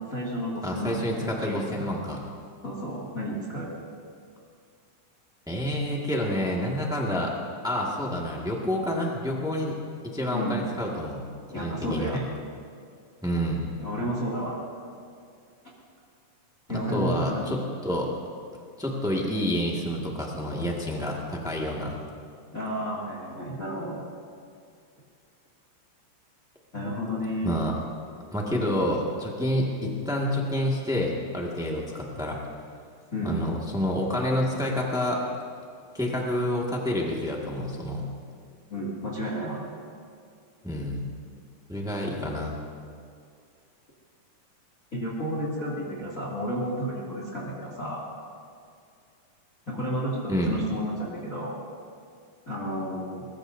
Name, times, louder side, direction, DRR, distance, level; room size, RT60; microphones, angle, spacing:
voice 1, 0.1-1.9 2.6-3.7 10.3-10.6 11.5-12.3 13.8-14.5 16.7-17.6 19.1-19.2 22.5-24.0 26.7-27.6 33.1-33.4 38.7-39.6 44.9-48.0 49.7-51.6 52.5-53.3, equal, 25° left, -5 dB, 2.3 m, -31 dB
voice 2, 0.6-2.2 5.5-7.3 7.6-9.8 10.0-11.3 11.5-12.2 13.2-13.7 16.7-18.1 18.8-22.0 27.4-27.7 28.3-32.4 33.2-35.2 35.9-38.0 40.6-41.0 41.7-42.5 50.3-50.5, left 1 dB, 5° right, -2 dB, 0.4 m, -28 dB
22.0 x 21.5 x 2.7 m, 2.3 s
omnidirectional pair, 3.9 m